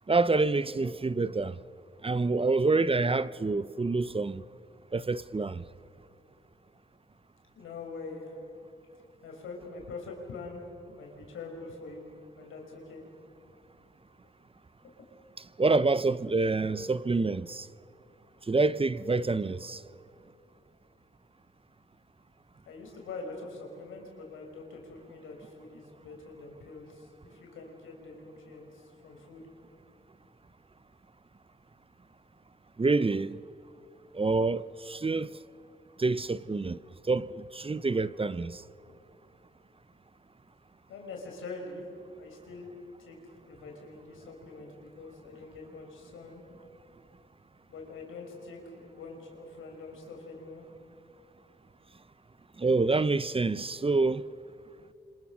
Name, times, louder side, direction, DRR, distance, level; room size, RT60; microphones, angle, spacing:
voice 1, 0.1-1.6 2.0-4.4 4.9-5.6 15.6-17.7 18.5-19.8 32.8-33.4 34.1-35.3 36.0-36.8 37.1-38.6 52.6-54.3, right 3 dB, 25° right, 0.8 m, -27 dB
voice 2, 7.5-8.4 9.2-10.6 10.9-12.1 12.4-13.0 14.8-14.9 22.7-29.5 38.8-39.0 40.9-41.8 42.1-42.7 43.0-43.2 43.5-46.4 47.7-50.7, left 3 dB, 85° left, 5.6 m, -44 dB
29.5 x 26.5 x 6.3 m
supercardioid pair, 50°, 20 cm